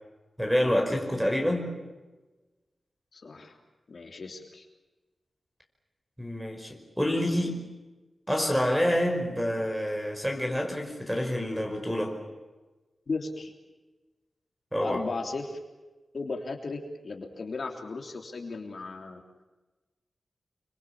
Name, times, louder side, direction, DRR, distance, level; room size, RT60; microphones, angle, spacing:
voice 1, 0.4-1.7 6.2-7.6 8.3-12.2 14.7-15.0, equal, 5° right, 3 dB, 5.4 m, -27 dB
voice 2, 3.1-3.6 3.9-4.6 13.1-13.5 14.8-15.6 16.1-19.2, left 3 dB, 50° left, 2 dB, 3.3 m, -36 dB
28.5 x 25.0 x 7.3 m, 1.2 s
wide cardioid pair, 155°, 0 cm